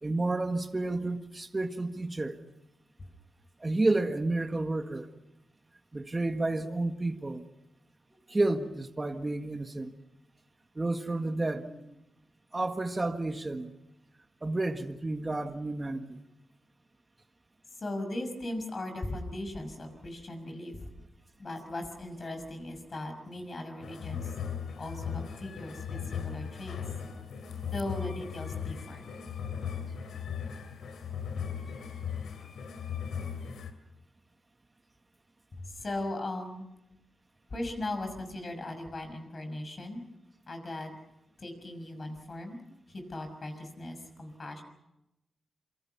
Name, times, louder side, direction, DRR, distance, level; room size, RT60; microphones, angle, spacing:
voice 1, 0.0-2.4 3.6-5.1 5.9-7.5 8.3-9.9 10.7-11.7 12.5-13.7 14.4-16.2, right 2 dB, 20° right, 1.7 m, -30 dB
voice 2, 17.8-20.9 21.4-24.3 24.8-26.8 27.7-29.0 35.6-36.7 37.5-40.0 40.5-41.0 41.4-42.6 42.9-44.6, left 1 dB, 40° left, 6.1 m, -38 dB
sound 1, 23.8-33.7, left 7 dB, 85° left, 3.0 m, -38 dB
27.0 x 25.5 x 5.8 m
wide cardioid pair, 115°, 0 cm